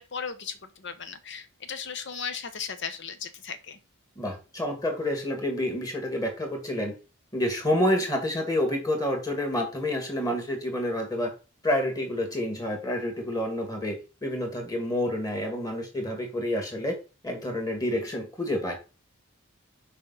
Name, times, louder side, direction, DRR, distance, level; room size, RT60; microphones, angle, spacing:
voice 1, 0.0-3.8, left 6 dB, 55° left, 10 dB, 0.9 m, -36 dB
voice 2, 4.2-7.0 7.3-11.3 11.6-13.9 14.2-17.0 17.2-18.8, left 1 dB, 15° left, 3 dB, 2.0 m, -28 dB
6.6 x 5.1 x 4.0 m, 0.31 s
head